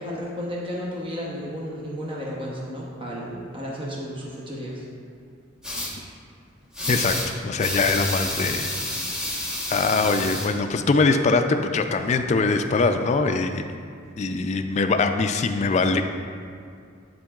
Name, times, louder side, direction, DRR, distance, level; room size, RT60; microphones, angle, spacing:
voice 1, 0.0-4.8, equal, 25° right, -4 dB, 0.8 m, -33 dB
sound 1, 5.6-5.9 6.7-7.3 7.6-10.5, left 1 dB, 5° right, 1.1 m, -29 dB
voice 2, 6.9-8.7 9.7-13.7 14.2-16.0, left 3 dB, 35° left, 7 dB, 0.3 m, -22 dB
10.0 x 4.5 x 2.4 m, 2.3 s
head